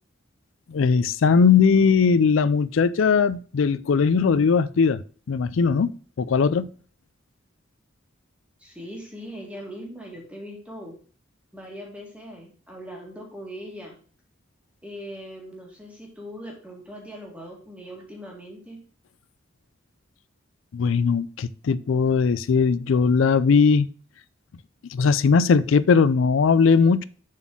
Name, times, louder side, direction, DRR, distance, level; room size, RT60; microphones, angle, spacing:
voice 1, 0.7-5.0 5.3-5.9 6.2-6.7 20.7-23.9 24.9-27.0, left 5 dB, 75° left, 0.4 m, -19 dB
voice 2, 8.6-10.9 11.5-14.0 14.8-18.8, equal, 5° right, 1.8 m, -40 dB
7.3 x 4.1 x 6.0 m
head